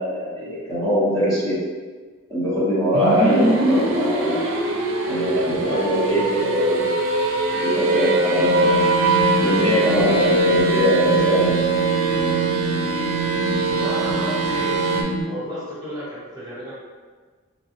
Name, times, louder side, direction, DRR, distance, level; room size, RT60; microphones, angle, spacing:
voice 1, 0.0-1.5 2.3-4.4 5.1-6.9 7.5-8.7 9.4-11.5, equal, 20° left, -11 dB, 0.9 m, -22 dB
sound 1, 2.9-15.0, right 2 dB, 80° right, 0.4 m, -22 dB
sound 2, 8.4-15.2, right 2 dB, 35° left, 0.6 m, -26 dB
voice 2, 13.7-16.7, equal, 20° right, -10 dB, 1.0 m, -33 dB
3.2 x 2.3 x 2.8 m, 1.5 s
head